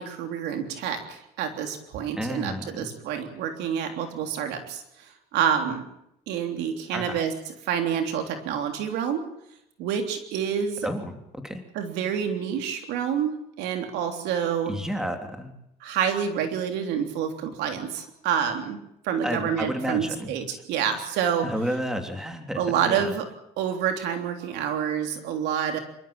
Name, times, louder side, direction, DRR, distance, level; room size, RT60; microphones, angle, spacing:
voice 1, 0.0-4.8 5.3-5.8 6.3-7.3 7.6-9.3 9.8-10.9 11.7-14.7 15.8-18.8 19.0-21.5 22.6-23.3 23.6-25.8, right 8 dB, 90° right, 5 dB, 3.4 m, -28 dB
voice 2, 2.2-2.9 6.9-7.2 10.8-11.1 11.4-11.6 14.7-15.5 19.2-20.3 21.4-23.1, equal, 5° right, 5 dB, 3.2 m, -31 dB
26.5 x 13.5 x 8.9 m, 0.80 s
cardioid pair, 110°, 17 cm